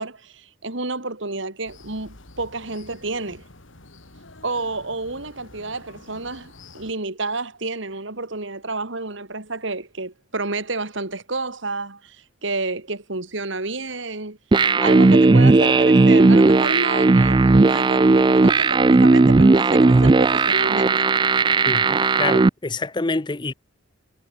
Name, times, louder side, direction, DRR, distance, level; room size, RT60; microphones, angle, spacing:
voice 1, 0.0-3.4 4.4-14.4 14.8-21.1, right 3 dB, 65° right, 2.5 m, -30 dB
sound 1, 1.6-6.9, left 2 dB, 70° left, 3.0 m, -47 dB
sound 2, 14.5-22.5, right 3 dB, 25° right, 0.3 m, -15 dB
voice 2, 21.7-23.5, left 3 dB, 20° left, 0.6 m, -27 dB
head